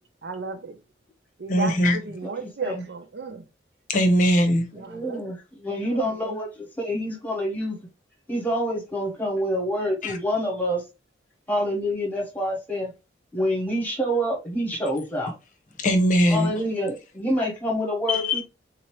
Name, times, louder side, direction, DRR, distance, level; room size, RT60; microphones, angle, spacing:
voice 1, 0.2-0.8 1.4-3.4 4.7-5.2 5.8-6.4 16.1-16.7, right 4 dB, 60° right, 0.5 m, -34 dB
voice 2, 1.5-2.0 3.9-4.6 10.0-10.2 15.8-16.5 18.1-18.4, equal, 40° left, 0.7 m, -20 dB
voice 3, 2.4-2.8 4.7-7.8 8.3-10.8 11.5-12.9 13.3-15.3 16.3-18.4, equal, 10° left, 1.2 m, -27 dB
3.8 x 2.8 x 3.1 m
head